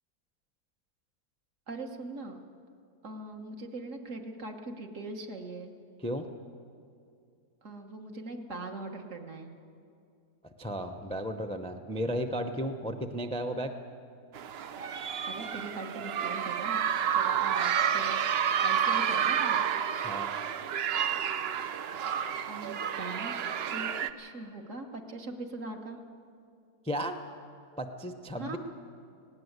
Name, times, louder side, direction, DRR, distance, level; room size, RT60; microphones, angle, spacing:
voice 1, 1.7-2.4 3.0-5.7 7.6-9.5 15.2-16.8 17.1-18.2 18.6-19.6 22.5-23.3 23.7-26.0 28.4-28.6, right 2 dB, 50° right, 4 dB, 1.7 m, -41 dB
voice 2, 10.6-13.7 20.0-20.3 26.8-27.1 27.8-28.6, equal, 10° left, 5 dB, 0.4 m, -34 dB
school children playing, 14.3-24.1, right 8 dB, 70° right, 0.6 m, -30 dB
19.0 x 17.0 x 8.1 m, 2.4 s
omnidirectional pair, 1.8 m